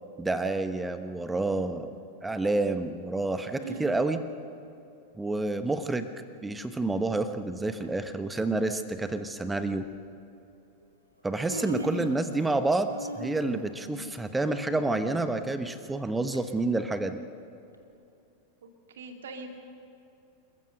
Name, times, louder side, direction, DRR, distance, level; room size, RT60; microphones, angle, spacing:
voice 1, 0.2-2.0 2.2-4.2 5.2-6.1 6.4-9.9 11.2-17.2, right 2 dB, 10° right, 9 dB, 1.1 m, -29 dB
voice 2, 3.6-4.0 11.7-12.1 18.6-19.5, right 2 dB, 60° right, 4 dB, 2.3 m, -40 dB
Human voice, 7.6-7.9 8.9-9.0 9.6-9.8 10.8-10.9 11.2-12.6 12.9-16.4 16.8-16.9 17.7-17.8, equal, 85° right, 1.5 m, -40 dB
27.5 x 14.5 x 6.7 m, 2.7 s
figure-of-eight pair, 90°, 0 cm